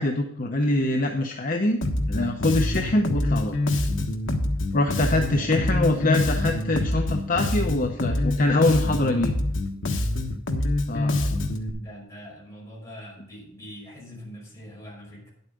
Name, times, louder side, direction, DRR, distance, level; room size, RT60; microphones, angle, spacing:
voice 1, 0.0-1.8 2.1-3.5 4.7-9.3 10.9-11.4, left 2 dB, 40° left, 3 dB, 0.8 m, -24 dB
Bass guitar, 1.8-11.7, left 1 dB, 70° left, 1.2 m, -25 dB
voice 2, 5.1-6.2 11.5-15.3, equal, 15° left, -4 dB, 5.4 m, -43 dB
10.5 x 8.1 x 5.2 m, 0.76 s
head